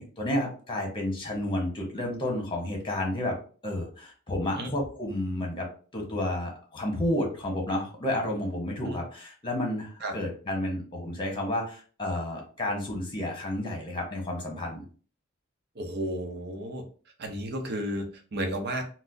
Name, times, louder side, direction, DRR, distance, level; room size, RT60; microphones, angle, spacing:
voice 1, 0.0-3.4 3.6-14.8, left 1 dB, 25° left, 1 dB, 1.1 m, -31 dB
voice 2, 15.7-16.8 17.2-18.8, right 1 dB, 50° right, 4 dB, 0.7 m, -33 dB
4.2 x 2.0 x 2.6 m, 0.39 s
head